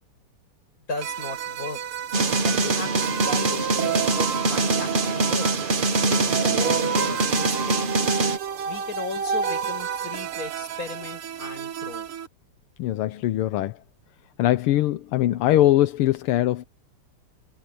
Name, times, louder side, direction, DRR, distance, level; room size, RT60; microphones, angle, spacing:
voice 1, 0.9-1.8 2.4-5.5 6.1-7.9 8.6-12.1, left 3 dB, 40° left, 6.6 m, -36 dB
sound 1, 1.0-12.3, right 7 dB, 80° right, 2.2 m, -30 dB
sound 2, 2.1-8.4, right 3 dB, 40° right, 0.8 m, -24 dB
voice 2, 12.8-13.8 14.4-16.6, left 14 dB, 85° left, 1.7 m, -21 dB
omnidirectional pair, 2.4 m